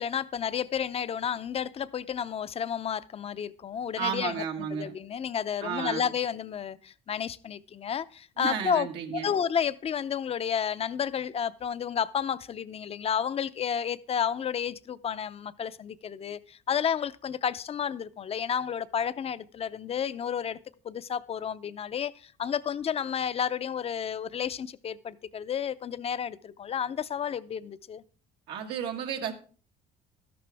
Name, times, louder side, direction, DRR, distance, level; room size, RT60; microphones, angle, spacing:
voice 1, 0.0-4.4 4.7-20.6 20.8-28.0, left 8 dB, 35° left, 0.5 m, -31 dB
voice 2, 4.0-5.0 5.6-6.1 8.4-9.3 28.5-29.3, right 7 dB, 90° right, 1.6 m, -33 dB
12.5 x 11.0 x 3.4 m
cardioid pair, 110°, 17 cm